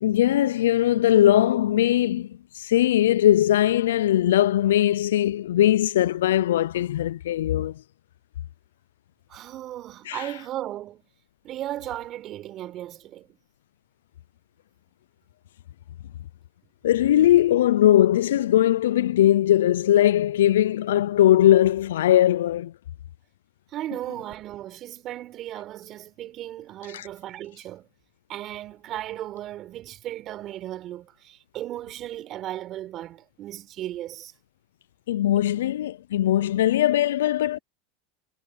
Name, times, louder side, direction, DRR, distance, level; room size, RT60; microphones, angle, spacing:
voice 1, 0.0-7.7 10.1-10.3 16.8-22.7 26.9-27.1 35.1-37.6, left 12 dB, 85° left, 0.4 m, -20 dB
voice 2, 9.3-11.0 11.4-13.4 23.7-27.9 28.3-34.3, right 13 dB, 45° right, 4.7 m, -36 dB
hypercardioid pair, 110°, 0 cm